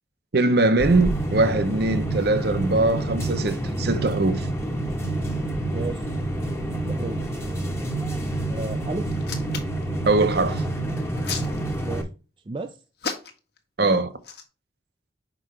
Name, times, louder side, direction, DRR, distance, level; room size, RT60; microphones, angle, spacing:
voice 1, 0.3-4.5 10.1-10.6 13.8-14.2, right 2 dB, 55° right, 0.8 m, -21 dB
sound 1, 0.8-12.0, right 1 dB, 15° left, 1.0 m, -28 dB
voice 2, 5.7-6.1 6.7-7.2 8.5-9.1 11.8-12.1 12.5-12.7, right 2 dB, 25° right, 0.4 m, -33 dB
Hands, 9.1-9.8 10.9-12.0 13.0-13.6 14.2-14.4, left 5 dB, 55° left, 1.3 m, -33 dB
6.1 x 4.8 x 3.2 m
head